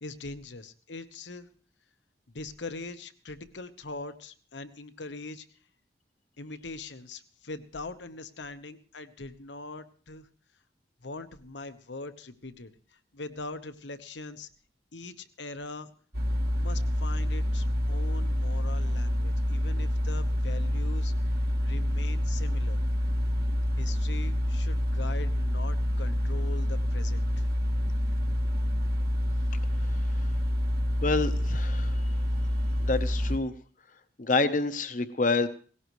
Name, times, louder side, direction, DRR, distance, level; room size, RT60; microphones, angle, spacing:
voice 1, 0.0-1.5 2.3-5.5 6.4-10.3 11.0-14.5 14.9-15.9 16.5-21.4 21.6-22.8 23.8-27.5, left 3 dB, 80° left, 11 dB, 1.1 m, -42 dB
sound 1, 16.1-33.4, equal, 55° right, 1.7 m, -27 dB
voice 2, 31.0-32.0 32.8-33.5 34.2-35.5, left 3 dB, 45° left, 11 dB, 0.8 m, -27 dB
18.5 x 17.0 x 3.1 m, 0.42 s
head